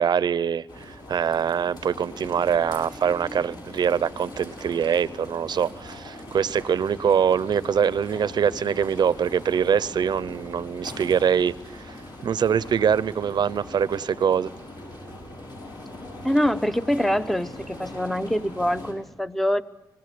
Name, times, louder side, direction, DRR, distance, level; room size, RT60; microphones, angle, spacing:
voice 1, 0.0-12.0 12.2-14.5, right 7 dB, 65° right, 18 dB, 0.7 m, -24 dB
sound 1, 0.7-18.9, left 1 dB, 60° left, 7.0 m, -41 dB
voice 2, 16.2-19.6, equal, 5° left, 12 dB, 0.8 m, -24 dB
25.5 x 18.5 x 6.8 m, 1.1 s
cardioid pair, 100°, 8 cm